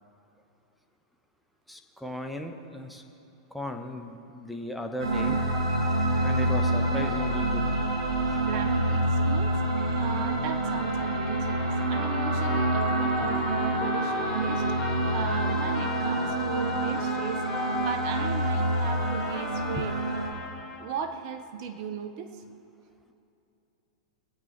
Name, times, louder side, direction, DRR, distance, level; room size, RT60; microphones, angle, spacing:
voice 1, 1.7-3.0 3.5-5.4 6.2-7.6 8.3-8.4 19.8-19.9, left 1 dB, ahead, 3 dB, 1.4 m, -36 dB
sound 1, 5.0-20.3, right 1 dB, 85° right, 3.5 m, -27 dB
voice 2, 8.4-9.6 9.9-17.4 17.8-20.0 20.8-22.3, right 7 dB, 50° right, 8 dB, 1.1 m, -37 dB
Trumpet, 10.6-21.0, left 5 dB, 30° left, 1.8 m, -40 dB
25.0 x 8.6 x 4.4 m, 2.8 s
hypercardioid pair, 110°, 3 cm